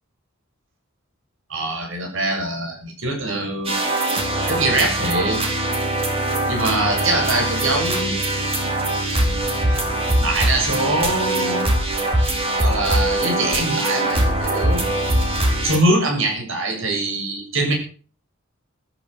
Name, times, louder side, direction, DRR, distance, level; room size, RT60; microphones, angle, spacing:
voice 1, 1.5-3.7 4.5-5.6 6.5-8.2 9.7-9.8 10.2-11.7 12.6-14.8 15.6-17.7, right 2 dB, 65° right, 2 dB, 7.5 m, -23 dB
sound 1, 3.7-15.8, right 1 dB, 25° right, 4.1 m, -22 dB
14.5 x 13.0 x 6.5 m, 0.41 s
head